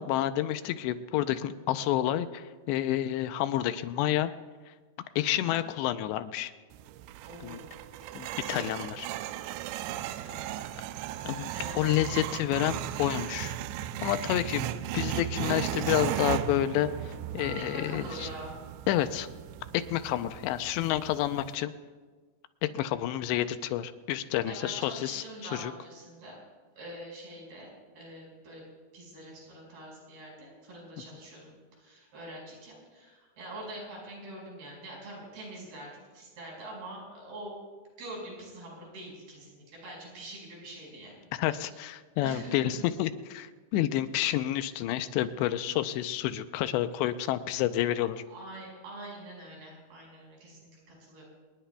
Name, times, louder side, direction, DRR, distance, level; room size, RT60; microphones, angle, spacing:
voice 1, 0.0-4.3 5.2-6.5 7.4-7.6 8.2-9.1 11.2-11.5 11.8-13.5 14.0-14.7 14.9-18.3 18.9-19.3 19.7-21.7 22.7-25.2 25.5-25.7 41.3-48.2, left 12 dB, 85° left, 10 dB, 2.8 m, -29 dB
voice 2, 5.3-5.6 7.2-7.7 10.1-10.5 11.5-12.2 17.5-18.6 24.5-26.4 26.8-28.6 28.9-37.5 38.0-41.2 41.6-41.8 42.2-42.8 48.3-50.6 51.0-51.2, right 1 dB, 60° right, -2 dB, 7.1 m, -44 dB
sound 1, 6.7-21.6, right 12 dB, 85° right, 2.7 m, -36 dB
27.0 x 20.0 x 2.3 m, 1.4 s
omnidirectional pair, 5.0 m